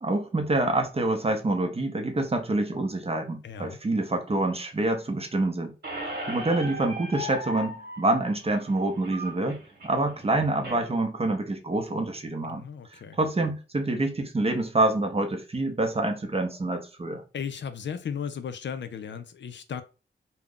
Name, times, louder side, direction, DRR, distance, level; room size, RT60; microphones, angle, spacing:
voice 1, 0.0-5.7 6.3-12.6 12.9-17.2, right 2 dB, 30° right, 0.6 m, -27 dB
voice 2, 3.4-3.8 12.4-13.2 17.3-19.8, left 7 dB, 65° left, 0.4 m, -35 dB
Squeak, 5.8-10.8, equal, 50° right, 1.1 m, -37 dB
2.3 x 2.1 x 3.5 m
wide cardioid pair, 85°, 20 cm